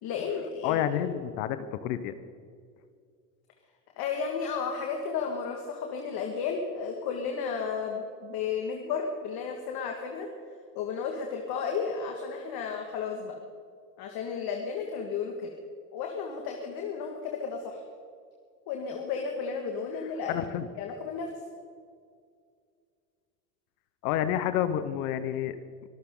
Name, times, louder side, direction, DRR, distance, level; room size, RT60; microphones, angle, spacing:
voice 1, 0.0-1.0 4.0-10.3 10.8-13.4 14.0-15.5 15.9-17.8 18.7-20.3 20.8-21.3, left 6 dB, 50° left, 2 dB, 2.1 m, -33 dB
voice 2, 0.6-2.1 20.3-20.7 24.0-25.6, left 11 dB, 65° left, 12 dB, 1.2 m, -29 dB
24.5 x 13.5 x 3.9 m, 2.2 s
hypercardioid pair, 105°, 49 cm